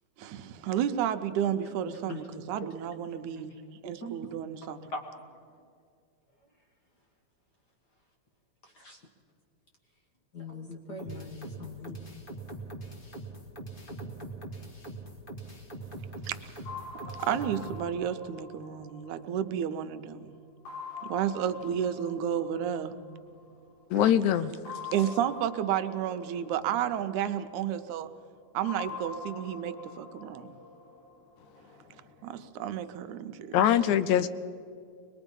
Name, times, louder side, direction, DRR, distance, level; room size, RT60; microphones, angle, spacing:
voice 1, 0.2-3.6 3.8-4.9 16.3-16.4 17.2-20.4 21.0-23.0 24.0-24.1 24.9-28.1 28.5-30.6 32.2-33.7, right 9 dB, 80° right, 9 dB, 2.1 m, -32 dB
voice 2, 10.3-12.0, left 2 dB, 45° left, 2 dB, 1.5 m, -40 dB
sound 1, 11.0-17.8, right 2 dB, 25° left, 1.2 m, -42 dB
sound 2, 16.7-20.0 20.7-23.6 24.7-27.8 28.7-31.8, left 5 dB, 60° left, 4.9 m, -45 dB
voice 3, 23.9-24.8 33.5-34.3, left 10 dB, 80° left, 13 dB, 2.0 m, -23 dB
24.5 x 21.0 x 5.3 m, 2.3 s
omnidirectional pair, 3.5 m